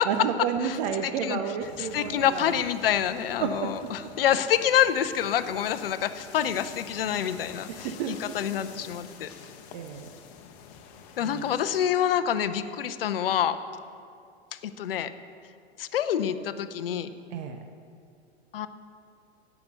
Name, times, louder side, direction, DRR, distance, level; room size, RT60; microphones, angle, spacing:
voice 1, 0.0-2.5 3.4-3.9 7.8-8.1 9.7-10.1 11.2-11.4 17.3-17.6, right 7 dB, 40° right, 6 dB, 0.7 m, -31 dB
voice 2, 0.6-9.3 11.2-13.6 14.5-15.1 15.8-17.1 18.5-18.7, left 10 dB, 60° left, 12 dB, 0.7 m, -27 dB
sound 1, 1.6-11.9, left 6 dB, 35° left, 1.0 m, -47 dB
16.5 x 6.0 x 6.6 m, 2.4 s
figure-of-eight pair, 95°, 33 cm